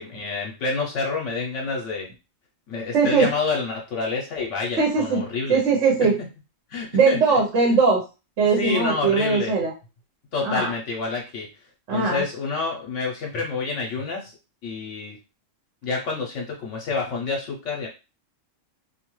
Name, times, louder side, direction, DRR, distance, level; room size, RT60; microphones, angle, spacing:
voice 1, 0.0-2.1 2.7-5.6 6.7-7.4 8.5-9.5 10.3-11.5 11.9-14.3 14.6-15.2 15.8-17.9, left 4 dB, 70° left, -1 dB, 0.9 m, -28 dB
voice 2, 2.9-3.3 4.8-5.2 5.5-6.2 6.9-8.0 8.4-9.7 10.4-10.7 11.9-12.2, right 4 dB, 70° right, 0 dB, 1.1 m, -20 dB
2.6 x 2.3 x 3.0 m, 0.29 s
omnidirectional pair, 1.3 m